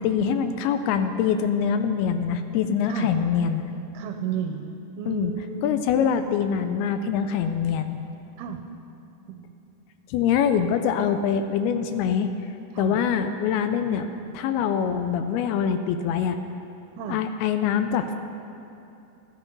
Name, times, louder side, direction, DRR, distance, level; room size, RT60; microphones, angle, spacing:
voice 1, 0.0-3.6 5.1-5.3 5.6-8.0 10.1-12.3 12.8-14.1 14.3-16.4 17.1-18.2, left 7 dB, 80° left, 8 dB, 2.4 m, -24 dB
voice 2, 3.9-5.8 8.4-8.6 9.3-9.6 12.7-13.0 17.0-17.2, right 7 dB, 80° right, 4 dB, 2.2 m, -33 dB
14.5 x 9.6 x 5.3 m, 2.8 s
omnidirectional pair, 4.7 m